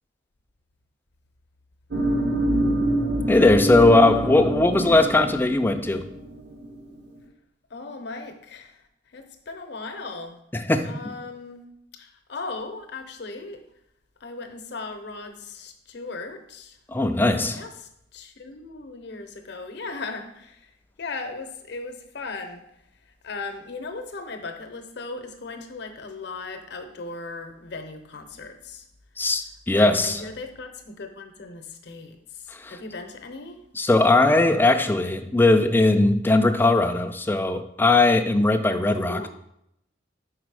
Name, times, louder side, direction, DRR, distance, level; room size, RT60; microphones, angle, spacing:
sound 1, 1.9-7.2, right 1 dB, 65° right, 1.0 m, -26 dB
voice 1, 3.3-6.1 10.5-11.0 16.9-17.6 29.2-30.2 32.6-32.7 33.8-39.3, left 2 dB, 10° left, 8 dB, 0.3 m, -19 dB
voice 2, 7.7-8.8 9.1-10.4 10.8-11.6 11.9-13.7 14.2-16.8 17.3-20.7 21.0-22.6 23.2-28.8 29.7-33.6 38.8-39.3, left 3 dB, 65° left, 7 dB, 0.7 m, -37 dB
5.0 x 4.0 x 4.7 m, 0.78 s
head